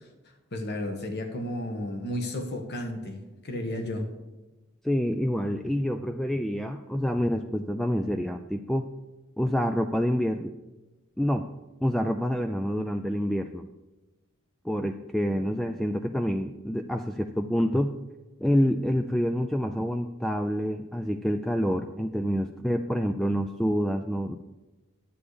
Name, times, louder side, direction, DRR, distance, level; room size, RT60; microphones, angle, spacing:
voice 1, 0.5-3.2 3.4-4.1, left 1 dB, 50° left, 5 dB, 1.4 m, -32 dB
voice 2, 4.8-8.9 9.4-10.5 11.2-11.5 11.8-13.7 14.6-18.0 18.4-24.4, equal, ahead, 6 dB, 0.3 m, -27 dB
10.5 x 8.3 x 5.0 m, 1.1 s
head